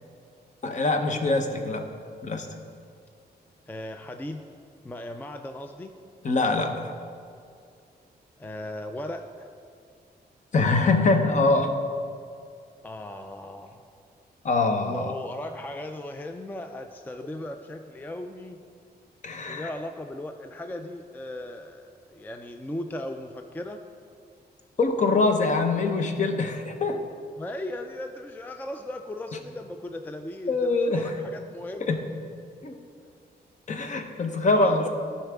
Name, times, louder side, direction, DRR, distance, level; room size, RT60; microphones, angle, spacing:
voice 1, 0.6-1.9 2.2-2.5 6.2-6.9 10.5-11.7 14.4-15.1 19.2-19.7 24.8-27.0 30.5-31.1 31.9-32.0 32.6-32.8 33.7-34.9, left 3 dB, 45° left, 5 dB, 0.8 m, -24 dB
voice 2, 3.7-4.4 4.8-5.9 8.4-9.5 12.8-13.9 14.8-18.6 19.5-23.8 27.4-32.0 34.5-34.9, left 1 dB, 10° left, 6 dB, 0.3 m, -37 dB
14.0 x 5.5 x 3.5 m, 2.3 s
wide cardioid pair, 130°, 17 cm